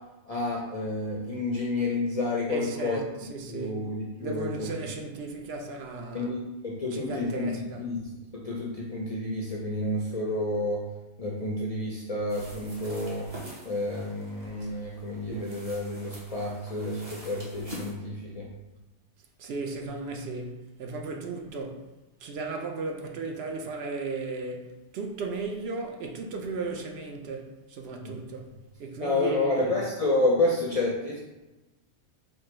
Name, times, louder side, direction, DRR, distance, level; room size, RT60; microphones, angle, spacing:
voice 1, 0.3-3.0 3.5-4.7 6.1-10.8 11.2-13.3 13.7-18.5 28.0-28.2 29.0-31.2, left 2 dB, 55° left, 0.4 m, -30 dB
voice 2, 2.5-3.8 4.2-6.3 6.8-7.9 19.4-21.9 22.2-28.5 28.8-30.0, right 3 dB, 70° right, 0.8 m, -35 dB
sound 1, 12.3-17.9, equal, 35° right, 0.9 m, -45 dB
4.3 x 2.5 x 3.0 m
omnidirectional pair, 1.2 m